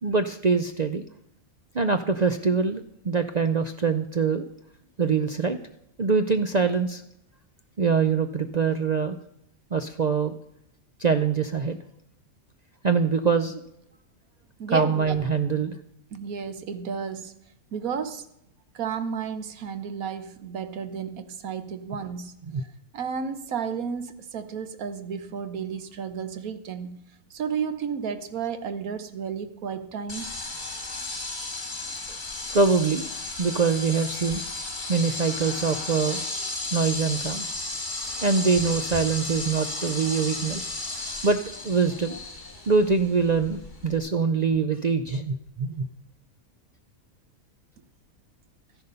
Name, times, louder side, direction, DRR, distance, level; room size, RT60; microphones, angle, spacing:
voice 1, 0.0-1.0 1.7-4.5 5.0-5.6 6.0-7.0 7.8-9.2 9.7-10.3 11.0-11.8 12.8-13.6 14.7-15.8 22.5-22.6 32.5-33.0 33.4-34.4 34.9-36.2 36.7-37.5 38.2-40.7 41.2-42.2 42.7-45.8, right 5 dB, 55° right, 0.4 m, -24 dB
voice 2, 14.6-15.2 16.1-17.3 17.7-18.3 18.7-22.7 22.9-27.0 27.3-30.3, right 6 dB, 75° right, 1.4 m, -32 dB
sound 1, 30.1-44.0, left 2 dB, 35° left, 2.3 m, -34 dB
13.0 x 10.5 x 5.3 m
omnidirectional pair, 1.5 m